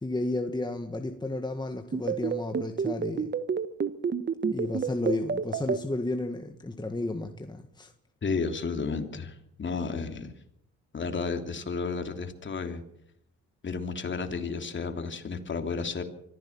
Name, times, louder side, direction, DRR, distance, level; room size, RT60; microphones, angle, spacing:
voice 1, 0.0-3.3 4.4-7.9, left 2 dB, 15° left, 5 dB, 1.7 m, -32 dB
sound 1, 1.9-5.8, right 6 dB, 35° right, 1.2 m, -28 dB
voice 2, 8.2-10.3 10.9-12.8 13.6-16.0, left 4 dB, 40° left, 6 dB, 3.1 m, -32 dB
24.5 x 15.5 x 7.4 m, 0.73 s
cardioid pair, 90°, 30 cm